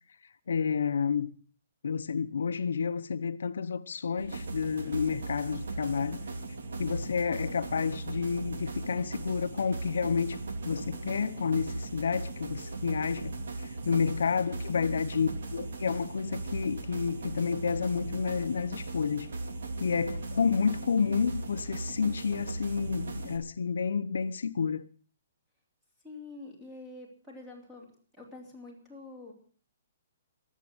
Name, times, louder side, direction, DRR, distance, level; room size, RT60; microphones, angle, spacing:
voice 1, 0.5-1.3 1.8-6.2 6.8-10.4 10.6-13.3 13.8-19.3 19.8-24.9, left 6 dB, 85° left, 0.9 m, -30 dB
sound 1, 4.2-23.4, right 3 dB, 65° right, 2.9 m, -38 dB
voice 2, 26.0-27.9 28.1-29.3, left 3 dB, 5° right, 3.4 m, -47 dB
23.5 x 8.5 x 6.2 m
hypercardioid pair, 180°, 0 cm